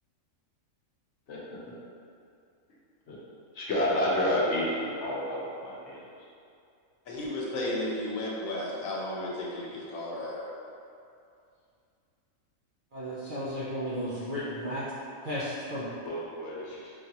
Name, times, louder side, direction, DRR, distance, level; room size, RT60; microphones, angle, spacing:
voice 1, 1.3-1.7 3.1-3.2 3.5-6.0 16.0-16.9, left 1 dB, 60° left, -6 dB, 1.0 m, -30 dB
voice 2, 7.1-10.5, left 1 dB, 80° left, -5 dB, 1.2 m, -33 dB
voice 3, 12.9-14.8 15.2-15.9, equal, 60° right, -9 dB, 0.5 m, -34 dB
5.0 x 2.4 x 2.8 m, 2.5 s
omnidirectional pair, 1.5 m